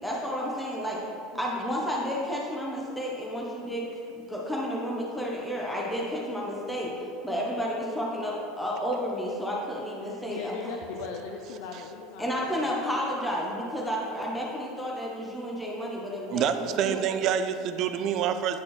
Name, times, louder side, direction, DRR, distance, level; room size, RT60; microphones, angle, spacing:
voice 1, 0.0-1.0 1.3-10.5 12.2-17.0, equal, 5° left, -4 dB, 0.7 m, -31 dB
voice 2, 1.3-1.8 10.3-12.7, left 5 dB, 70° left, 2 dB, 0.4 m, -39 dB
voice 3, 16.3-18.6, right 8 dB, 45° right, 9 dB, 0.4 m, -27 dB
9.5 x 4.1 x 3.0 m, 2.6 s
supercardioid pair, 145°, 0 cm